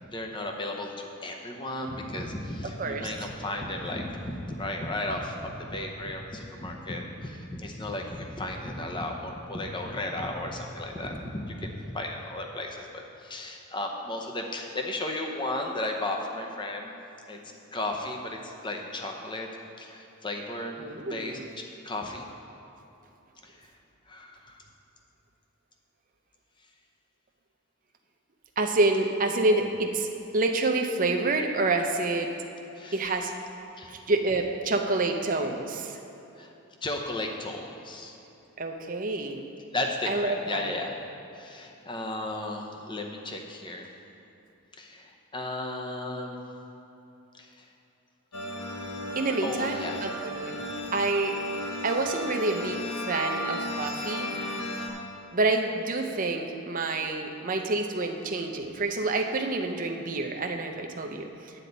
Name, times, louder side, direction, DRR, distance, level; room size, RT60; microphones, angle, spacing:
voice 1, 0.1-16.9 17.3-17.4 17.7-19.5 19.8-20.8 21.1-22.3 23.4-23.6 24.1-24.6 32.8-33.0 33.8-33.9 36.4-36.5 36.8-38.1 39.7-41.0 41.3-43.9 44.8-46.4 47.3-47.6 49.4-50.0, left 1 dB, 20° left, 2 dB, 0.7 m, -34 dB
voice 2, 2.8-3.3 20.8-21.4 28.6-30.1 30.3-32.3 32.9-33.3 33.9-36.0 38.6-39.4 40.1-40.7 49.1-50.6 50.9-51.3 51.8-54.3 55.3-61.5, right 2 dB, 35° right, 3 dB, 0.6 m, -28 dB
sound 1, 48.3-54.9, left 1 dB, 85° left, 1.3 m, -34 dB
9.9 x 9.0 x 4.0 m, 2.9 s
head